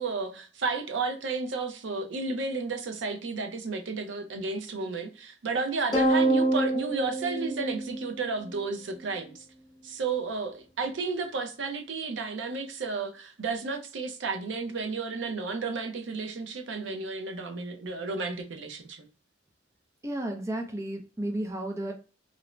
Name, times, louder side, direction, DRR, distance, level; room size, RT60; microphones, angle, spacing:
voice 1, 0.0-9.4 9.8-19.1, right 4 dB, 70° right, 0.5 m, -32 dB
sound 1, 5.9-8.5, right 2 dB, 20° left, 0.8 m, -26 dB
voice 2, 20.0-21.9, right 1 dB, 15° right, 0.4 m, -33 dB
2.5 x 2.0 x 3.0 m
head